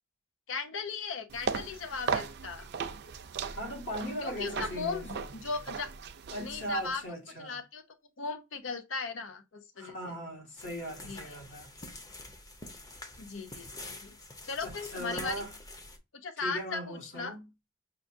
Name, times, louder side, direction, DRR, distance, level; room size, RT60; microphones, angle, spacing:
voice 1, 0.5-2.7 4.2-5.1 5.4-5.9 6.4-7.0 7.4-7.8 8.2-9.9 11.0-11.2 13.2-14.2 14.4-15.5 16.2-17.4, left 4 dB, 90° left, 0.7 m, -37 dB
sound 1, 1.3-6.9, right 6 dB, 60° right, 0.4 m, -37 dB
voice 2, 3.4-5.3 6.3-7.6 9.8-11.7 14.6-15.5 16.4-17.4, right 1 dB, 65° left, 1.9 m, -39 dB
sound 2, 10.6-16.0, left 2 dB, 20° left, 0.6 m, -46 dB
5.9 x 2.3 x 2.6 m
head